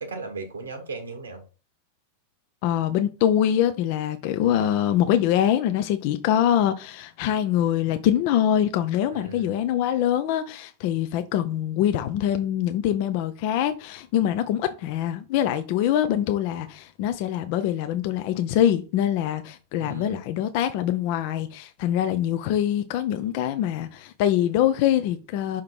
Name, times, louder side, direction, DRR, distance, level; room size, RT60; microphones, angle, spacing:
voice 1, 0.0-1.4 9.1-9.5 19.8-20.2, right 3 dB, 75° right, 1.2 m, -36 dB
voice 2, 2.6-25.6, left 11 dB, 45° left, 0.5 m, -24 dB
5.8 x 3.6 x 4.6 m
figure-of-eight pair, 90°, 0 cm